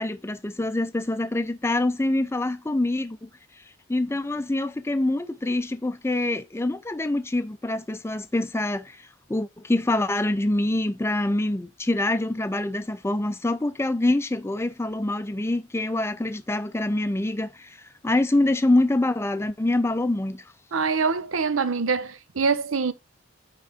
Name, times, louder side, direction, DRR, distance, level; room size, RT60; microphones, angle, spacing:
voice 1, 0.0-3.3 3.9-17.8 18.0-20.4, left 2 dB, 10° left, 0.4 m, -25 dB
voice 2, 20.7-22.9, right 5 dB, 75° right, 0.7 m, -24 dB
9.3 x 3.8 x 3.5 m
head